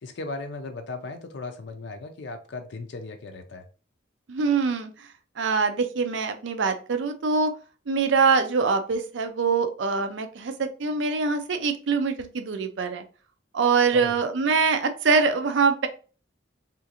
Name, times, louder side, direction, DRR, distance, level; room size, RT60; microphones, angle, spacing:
voice 1, 0.0-3.7 13.9-14.1, left 3 dB, 60° left, 0.4 m, -37 dB
voice 2, 4.3-5.1 5.4-7.5 7.9-13.0 13.5-15.9, right 5 dB, 70° right, 0.5 m, -24 dB
3.7 x 2.5 x 2.7 m
head